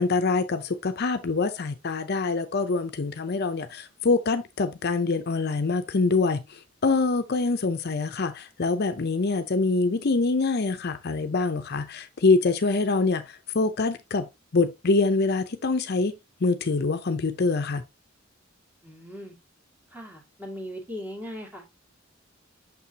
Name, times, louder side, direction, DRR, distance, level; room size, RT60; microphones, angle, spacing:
voice 1, 0.0-16.1 16.4-17.8, left 3 dB, 55° left, 0.6 m, -25 dB
voice 2, 18.8-19.3 19.9-21.7, equal, 10° right, 2.4 m, -39 dB
6.7 x 5.8 x 2.8 m
head